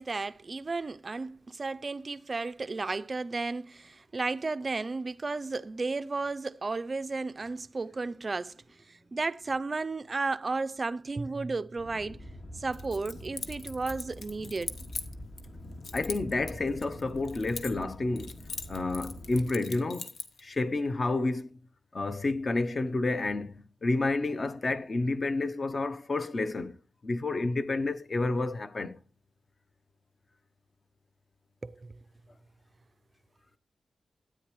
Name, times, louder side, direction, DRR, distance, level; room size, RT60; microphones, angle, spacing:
voice 1, 0.0-12.3 12.6-14.7 31.6-32.0, right 3 dB, 35° right, 0.4 m, -33 dB
sound 1, 11.8-19.5, left 1 dB, 55° left, 2.0 m, -45 dB
Keys jangling, 12.7-15.5 15.8-17.9 18.2-20.4, left 5 dB, 75° left, 1.1 m, -41 dB
voice 2, 15.9-18.4 18.7-20.1 20.4-21.6 21.9-26.7 27.0-29.0, left 2 dB, 40° left, 0.8 m, -30 dB
13.0 x 9.1 x 3.1 m
wide cardioid pair, 135°, 0 cm